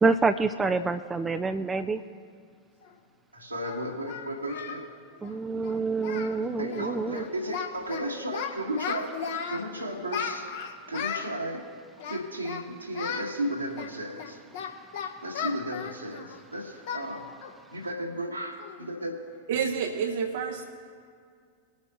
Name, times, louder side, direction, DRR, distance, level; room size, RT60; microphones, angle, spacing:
voice 1, 0.0-2.0 5.2-7.2, right 4 dB, 15° right, 9 dB, 0.5 m, -27 dB
Singing, 2.8-2.9 3.6-4.8 5.1-5.3 5.6-5.7 6.0-6.4 6.6-6.9 7.1-8.0 8.3-9.6 10.1-11.3 12.0-12.6 12.9-13.3 13.7-16.4 16.9-17.1 17.4-17.6 18.0-18.1 18.6-18.9, left 7 dB, 55° left, 1.3 m, -35 dB
voice 2, 3.3-4.8 6.6-9.1 9.5-10.5 10.9-11.6 12.1-14.4 15.2-17.3 17.7-19.2, right 1 dB, 85° right, -1 dB, 1.9 m, -34 dB
voice 3, 19.5-20.7, right 6 dB, 55° right, 4 dB, 0.8 m, -29 dB
21.5 x 8.4 x 3.1 m, 2.2 s
figure-of-eight pair, 90°, 0 cm